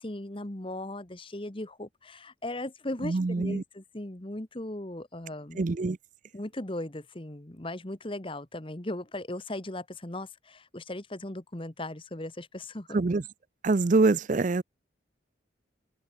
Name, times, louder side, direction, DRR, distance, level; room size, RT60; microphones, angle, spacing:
voice 1, 0.0-5.6 6.3-13.0, left 1 dB, 25° left, 1.4 m, -38 dB
voice 2, 3.0-3.6 5.6-6.0 12.9-13.2 13.6-14.6, right 3 dB, 40° right, 0.5 m, -24 dB
head